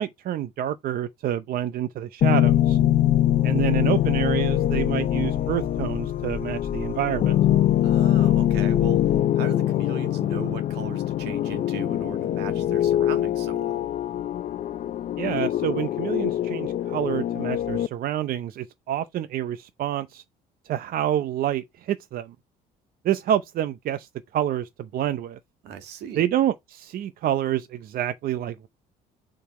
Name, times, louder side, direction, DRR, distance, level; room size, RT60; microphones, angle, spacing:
voice 1, 0.0-2.8 3.4-7.4 15.2-20.2 20.6-22.3 23.0-25.4 26.2-28.7, right 11 dB, 60° right, 0.6 m, -28 dB
sound 1, 2.2-17.9, left 12 dB, 50° left, 0.5 m, -23 dB
sound 2, 2.4-9.2, left 5 dB, 15° left, 1.0 m, -35 dB
voice 2, 7.8-9.0 9.4-13.8 25.6-26.3, right 8 dB, 80° right, 1.8 m, -38 dB
7.1 x 3.8 x 4.9 m
cardioid pair, 110°, 17 cm